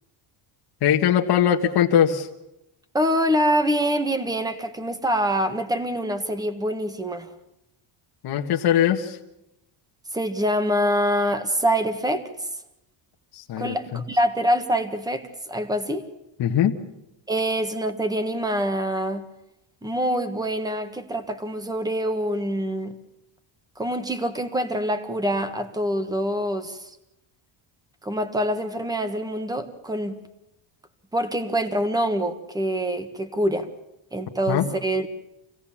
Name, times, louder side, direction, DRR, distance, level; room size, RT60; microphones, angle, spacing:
voice 1, 0.8-2.3 8.2-9.2 13.3-14.0 16.4-16.8 34.5-34.7, left 9 dB, 50° left, 2 dB, 1.5 m, -21 dB
voice 2, 2.9-7.3 10.1-12.2 13.6-16.0 17.3-19.3 19.8-23.0 23.8-27.0 28.0-30.2 31.1-33.7 34.1-35.1, equal, 10° right, 9 dB, 1.4 m, -25 dB
26.5 x 17.0 x 7.3 m, 0.90 s
cardioid pair, 160°, 49 cm